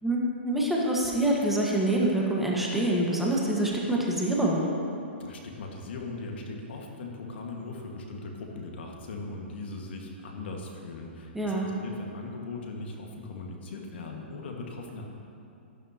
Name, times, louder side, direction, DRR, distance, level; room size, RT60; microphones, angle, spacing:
voice 1, 0.0-4.7 11.3-11.7, right 1 dB, 5° right, -3 dB, 1.5 m, -26 dB
voice 2, 5.2-15.1, left 3 dB, 65° left, 1 dB, 1.7 m, -39 dB
13.0 x 12.0 x 2.9 m, 2.7 s
hypercardioid pair, 125°, 6 cm